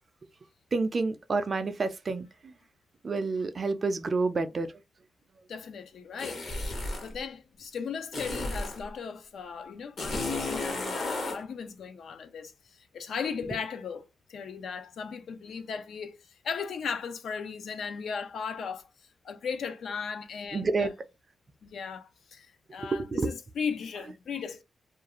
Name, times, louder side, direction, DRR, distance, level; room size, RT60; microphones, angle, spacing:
voice 1, 0.7-2.3 3.0-4.7 20.5-20.9 22.9-23.3, right 3 dB, 40° right, 0.4 m, -28 dB
voice 2, 5.5-6.4 7.0-18.9 19.2-20.9 21.6-24.6, left 6 dB, 70° left, 0.4 m, -37 dB
sound 1, 6.2-7.1 8.1-8.8 10.0-11.4, left 2 dB, 55° left, 0.9 m, -33 dB
2.4 x 2.3 x 2.9 m
cardioid pair, 110°, 0 cm